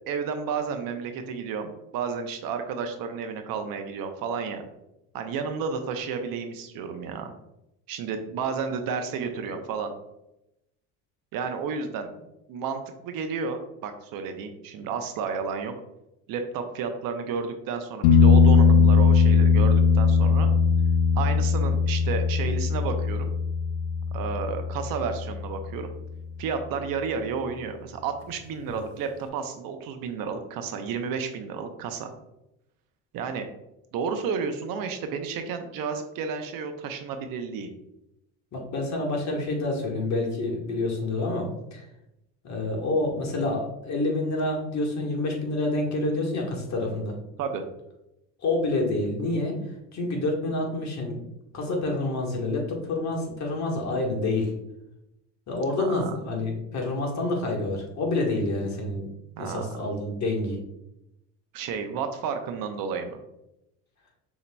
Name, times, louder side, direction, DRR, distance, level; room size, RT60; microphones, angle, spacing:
voice 1, 0.1-4.6 5.1-7.3 7.9-9.9 11.3-12.1 12.5-15.7 16.3-20.5 21.2-23.3 24.1-25.9 26.4-32.1 33.1-33.5 33.9-37.7 47.4-47.6 55.8-56.1 59.4-59.7 61.5-63.2, right 5 dB, 60° right, 7 dB, 0.7 m, -31 dB
sound 1, 18.0-25.6 28.7-28.8, left 5 dB, 85° left, 0.6 m, -20 dB
voice 2, 38.5-41.9 42.4-47.2 48.4-49.5 49.9-51.2 51.5-54.5 55.5-59.1 59.4-60.6, left 2 dB, 45° left, 0 dB, 1.4 m, -28 dB
6.5 x 2.9 x 2.2 m, 0.86 s
supercardioid pair, 85°, 39 cm